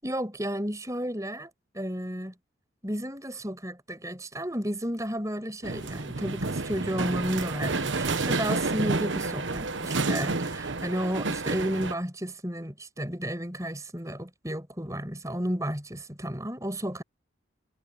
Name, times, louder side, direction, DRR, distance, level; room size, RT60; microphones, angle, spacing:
voice 1, 0.0-2.3 2.8-17.0, equal, 15° right, 7.0 m, -32 dB
sound 1, 5.6-11.9, right 3 dB, 75° right, 1.2 m, -30 dB
head